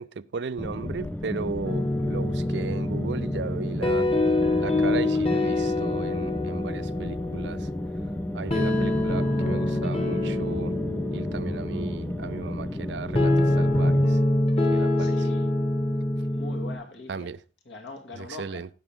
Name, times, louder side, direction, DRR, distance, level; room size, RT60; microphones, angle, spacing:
voice 1, 0.0-4.1 4.6-7.7 8.3-10.8 11.1-14.2 14.7-15.2 17.1-17.4 18.2-18.7, right 5 dB, 65° right, 0.5 m, -35 dB
sound 1, 0.6-14.0, left 1 dB, 10° left, 0.4 m, -33 dB
sound 2, 1.6-16.7, left 1 dB, 30° left, 1.6 m, -26 dB
voice 2, 15.0-15.6 16.3-17.4 17.6-18.7, left 2 dB, 70° left, 2.4 m, -41 dB
16.5 x 6.0 x 3.6 m
head